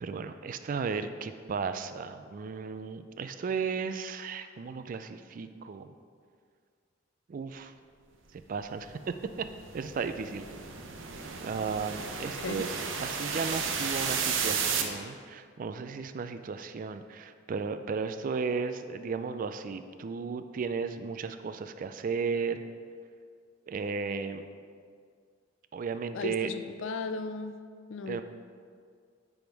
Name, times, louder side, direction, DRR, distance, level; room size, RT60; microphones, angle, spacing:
voice 1, 0.0-5.9 7.3-7.7 8.5-9.1 9.7-10.4 11.4-22.6 23.7-24.4 25.7-26.5 28.1-28.2, right 5 dB, 45° right, 10 dB, 0.3 m, -35 dB
sound 1, 8.8-14.8, right 6 dB, 75° right, 0.7 m, -33 dB
voice 2, 12.2-12.7 26.1-27.6 27.9-28.2, left 4 dB, 75° left, 9 dB, 0.4 m, -36 dB
9.0 x 3.6 x 4.6 m, 2.1 s
head